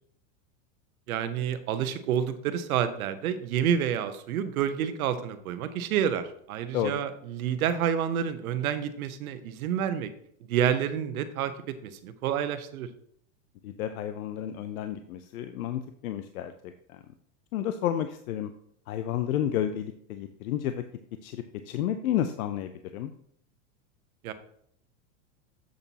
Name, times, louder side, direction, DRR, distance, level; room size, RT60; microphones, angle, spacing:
voice 1, 1.1-10.1 10.5-12.9 24.2-24.3, right 9 dB, 80° right, 11 dB, 1.0 m, -29 dB
voice 2, 13.6-17.0 17.5-18.5 18.9-20.8 21.2-23.1, left 10 dB, 75° left, 9 dB, 0.7 m, -31 dB
7.8 x 7.0 x 2.9 m, 0.66 s
supercardioid pair, 160°, 42 cm